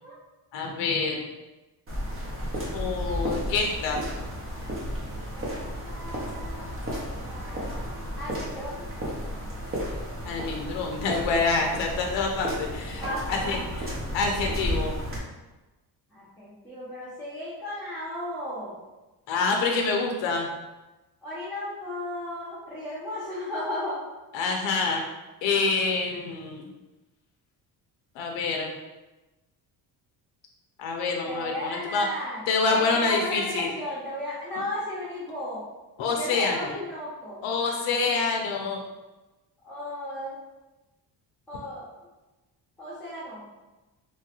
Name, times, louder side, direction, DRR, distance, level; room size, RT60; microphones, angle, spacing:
voice 1, 0.5-1.2 2.7-4.0 10.3-13.0 13.3-13.6 14.1-14.9 19.3-20.5 24.3-25.0 25.4-26.6 28.2-28.7 30.8-32.1 32.5-33.7 36.0-36.7 37.4-38.8, left 4 dB, 85° left, 1 dB, 0.6 m, -26 dB
sound 1, 1.9-15.2, equal, 30° right, 0.7 m, -33 dB
voice 2, 5.1-6.7 7.3-7.9 8.2-8.8 13.0-13.6 16.1-18.8 21.2-24.0 31.3-32.4 32.7-35.6 36.1-37.9 39.6-40.4 41.5-41.9 42.8-43.4, left 1 dB, 5° left, -12 dB, 0.8 m, -35 dB
3.1 x 2.3 x 2.9 m, 1.1 s
cardioid pair, 140°, 43 cm